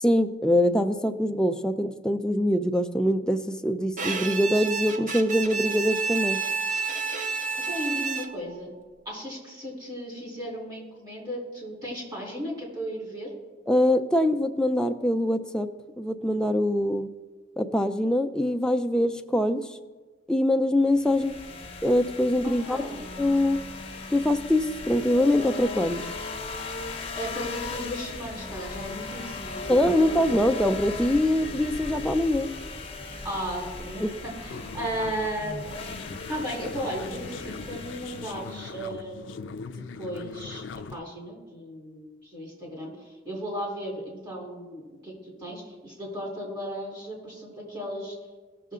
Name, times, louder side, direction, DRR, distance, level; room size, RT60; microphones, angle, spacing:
voice 1, 0.0-6.4 13.7-15.7 16.0-17.1 17.6-19.6 20.3-21.4 21.8-22.8 23.2-23.6 24.1-26.0 29.7-32.5 34.0-34.1, left 1 dB, 5° left, 6 dB, 0.4 m, -23 dB
Bowed string instrument, 4.0-8.6, right 4 dB, 45° right, 0.7 m, -30 dB
voice 2, 7.6-8.7 9.1-13.3 22.4-23.0 27.1-30.2 33.2-39.4 40.0-40.6 40.9-42.9 43.3-48.2, equal, 20° right, -3 dB, 3.5 m, -35 dB
sound 1, 20.9-38.7, left 3 dB, 30° left, 1.1 m, -37 dB
sound 2, 34.5-41.0, left 4 dB, 80° left, 0.5 m, -41 dB
17.0 x 6.8 x 3.7 m, 1.3 s
head